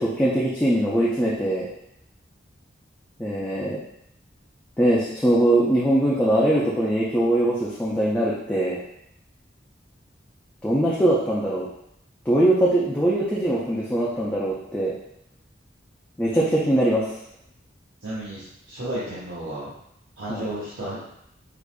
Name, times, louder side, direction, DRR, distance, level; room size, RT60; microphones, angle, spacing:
voice 1, 0.0-1.7 3.2-3.8 4.8-8.8 10.6-11.7 12.3-14.9 16.2-17.1 20.3-20.5, right 1 dB, 10° left, -7 dB, 0.4 m, -21 dB
voice 2, 18.0-19.7 20.2-21.2, right 1 dB, 90° right, -10 dB, 1.0 m, -33 dB
4.8 x 2.5 x 2.2 m, 0.76 s
head